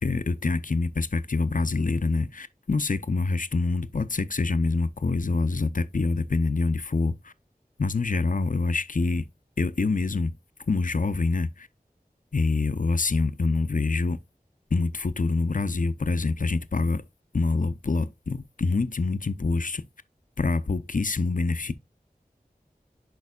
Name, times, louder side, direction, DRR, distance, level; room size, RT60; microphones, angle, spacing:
voice 1, 0.0-7.3 7.8-9.3 9.6-10.3 10.7-11.7 12.3-14.2 14.7-17.0 17.3-19.8 20.4-21.7, left 3 dB, 55° left, 0.6 m, -26 dB
10.5 x 4.6 x 2.3 m
wide cardioid pair, 40°, 16 cm